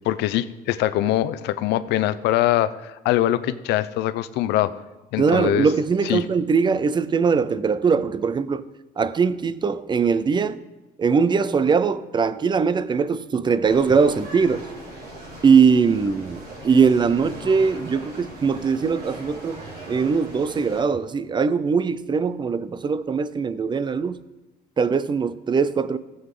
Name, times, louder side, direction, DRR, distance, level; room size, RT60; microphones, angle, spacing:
voice 1, 0.0-4.7 5.1-5.7 6.0-6.2, left 13 dB, 85° left, 0.6 m, -23 dB
voice 2, 5.2-8.6 9.0-10.6 11.0-14.6 15.4-24.2 24.8-26.0, right 5 dB, 25° right, 0.5 m, -21 dB
sound 1, 13.6-20.8, right 1 dB, 70° right, 4.6 m, -39 dB
16.0 x 7.8 x 3.8 m
cardioid pair, 110°, 17 cm